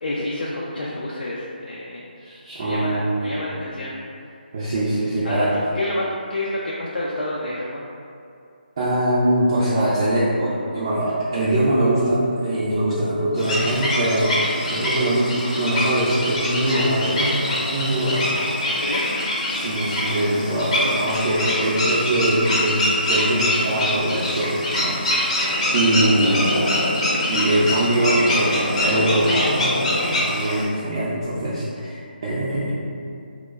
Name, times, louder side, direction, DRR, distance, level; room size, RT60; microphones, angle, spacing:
voice 1, 0.0-2.0 2.6-3.9 5.2-5.5 5.7-6.0 6.3-7.8 18.7-19.4 25.8-26.0, left 1 dB, 65° left, -5 dB, 0.4 m, -29 dB
voice 2, 2.2-3.5 4.5-5.5 8.8-18.4 19.5-26.5 27.3-29.7 30.1-32.7, right 1 dB, 30° right, -10 dB, 0.5 m, -22 dB
sound 1, 13.4-30.6, left 1 dB, 40° left, 0.8 m, -24 dB
3.0 x 2.1 x 3.4 m, 2.6 s
figure-of-eight pair, 165°, 5 cm